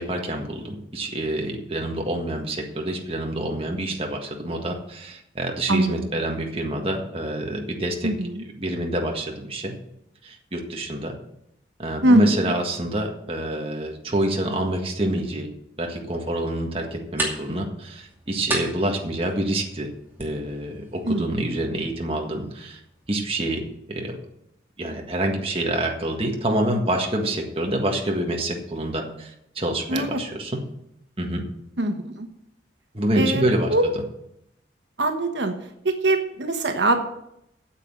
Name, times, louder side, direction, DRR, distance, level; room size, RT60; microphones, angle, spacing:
voice 1, 0.0-8.1 8.6-9.7 10.2-11.2 11.8-15.5 15.8-19.9 20.2-22.8 23.1-24.2 24.8-30.6 31.2-31.4 32.9-33.7, right 1 dB, 30° right, 1 dB, 1.6 m, -27 dB
voice 2, 8.0-8.4 12.0-12.5 21.1-21.3 29.9-30.2 31.8-32.0 33.2-33.8 35.0-35.5 35.8-37.1, right 2 dB, 85° right, 5 dB, 1.2 m, -22 dB
sound 1, 16.2-23.2, right 1 dB, 10° right, 2.4 m, -36 dB
8.9 x 7.6 x 7.6 m, 0.80 s
head